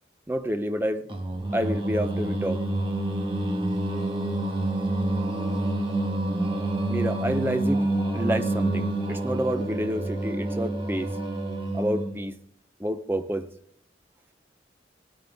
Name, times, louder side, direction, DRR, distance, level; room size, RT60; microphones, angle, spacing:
voice 1, 0.3-1.1 1.5-2.6 6.9-11.1 11.7-12.3 12.8-13.5, equal, 10° right, 8 dB, 0.7 m, -28 dB
Singing, 1.1-12.2, right 2 dB, 30° right, 1.5 m, -28 dB
18.5 x 9.2 x 3.6 m, 0.68 s
head